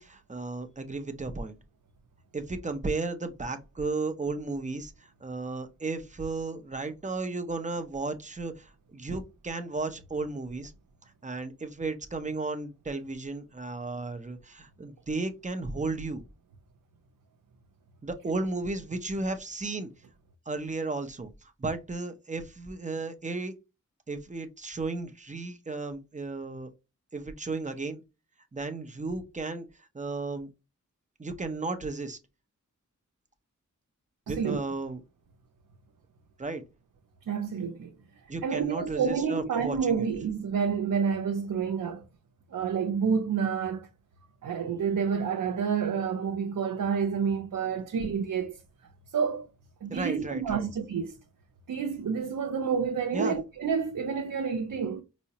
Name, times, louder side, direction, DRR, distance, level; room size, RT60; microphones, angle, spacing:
voice 1, 0.0-1.5 2.3-10.7 11.2-16.2 18.0-19.9 20.5-23.5 24.1-26.7 27.1-28.0 28.5-29.7 29.9-30.5 31.2-32.2 34.3-35.0 36.4-36.6 38.3-40.1 49.9-50.7 53.1-53.4, right 3 dB, 25° right, 0.6 m, -34 dB
voice 2, 34.3-34.6 37.3-37.9 38.4-42.0 42.5-43.9 44.4-48.6 49.1-49.5 49.8-51.2 51.7-55.0, right 6 dB, 90° right, 0.5 m, -29 dB
4.7 x 2.1 x 2.8 m
wide cardioid pair, 90°, 31 cm